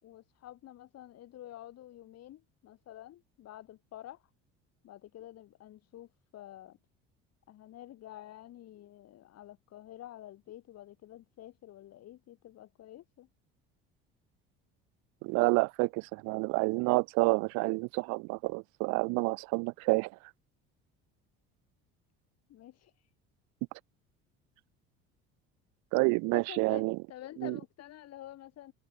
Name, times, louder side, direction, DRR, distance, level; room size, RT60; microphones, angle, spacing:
voice 1, 0.0-4.2 4.8-6.8 7.5-13.3 22.5-22.9 26.3-28.7, left 13 dB, 60° left, 5.1 m, -49 dB
voice 2, 15.2-20.1 25.9-27.0 27.4-27.6, right 29 dB, 75° right, 0.6 m, -29 dB
supercardioid pair, 85°, 29 cm